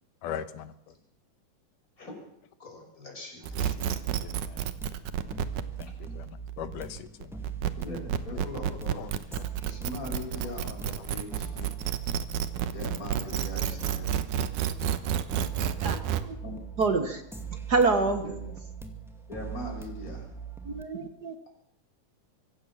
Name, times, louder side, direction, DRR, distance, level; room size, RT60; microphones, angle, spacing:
voice 1, 0.2-0.9 3.6-3.9 4.2-4.7 5.2-5.5 5.8-7.4 8.3-9.5 10.3-10.6 10.9-11.1 11.6-11.8 13.5-13.6 13.9-14.1, left 9 dB, 80° left, 12 dB, 2.7 m, -42 dB
voice 2, 2.6-3.5 7.8-9.0 9.6-11.5 12.7-14.1 16.4-16.5 18.2-18.5 19.3-20.3, left 2 dB, 25° left, 2 dB, 6.2 m, -40 dB
sound 1, 3.4-16.2, right 9 dB, 75° right, 2.6 m, -30 dB
sound 2, 3.5-20.8, right 6 dB, ahead, 1.4 m, -41 dB
voice 3, 15.8-16.4 16.8-17.2 17.7-18.2 20.6-21.3, right 4 dB, 50° right, 8 dB, 1.1 m, -26 dB
25.0 x 15.5 x 7.3 m, 0.74 s
omnidirectional pair, 3.7 m